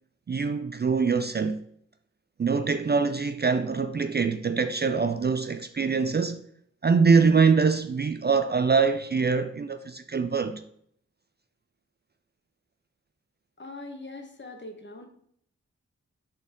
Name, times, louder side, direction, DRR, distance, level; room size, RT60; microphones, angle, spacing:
voice 1, 0.3-1.6 2.4-6.4 6.8-10.6, right 5 dB, 35° right, 0.4 m, -24 dB
voice 2, 13.6-15.1, left 2 dB, 40° left, 1.2 m, -41 dB
6.2 x 4.1 x 3.7 m
cardioid pair, 50°, 30 cm